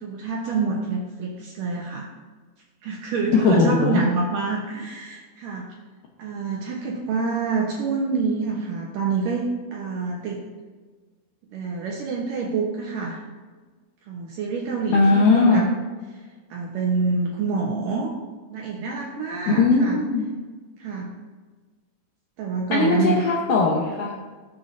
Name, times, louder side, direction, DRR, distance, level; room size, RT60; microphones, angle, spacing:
voice 1, 0.0-2.1 2.8-5.7 6.2-10.4 11.5-13.2 14.1-15.7 16.5-18.1 18.5-20.0 20.8-21.1 22.4-23.2, right 4 dB, 75° right, -2 dB, 2.0 m, -27 dB
voice 2, 3.3-4.1 14.9-15.7 19.5-20.3 22.7-24.2, left 3 dB, 90° left, -2 dB, 1.8 m, -19 dB
19.0 x 7.5 x 2.6 m, 1.4 s
omnidirectional pair, 5.2 m